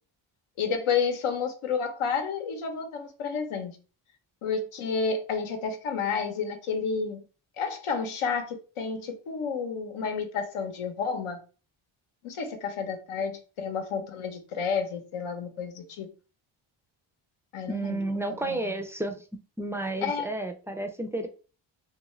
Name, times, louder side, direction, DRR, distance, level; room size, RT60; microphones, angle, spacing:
voice 1, 0.6-3.7 4.4-7.2 7.6-11.4 12.2-16.1 17.5-18.0 18.3-18.7 20.0-20.3, left 5 dB, 80° left, 5 dB, 0.8 m, -30 dB
voice 2, 17.7-19.2 19.6-21.3, right 2 dB, 5° right, 5 dB, 0.4 m, -31 dB
2.4 x 2.3 x 3.0 m, 0.35 s
cardioid pair, 70°, 49 cm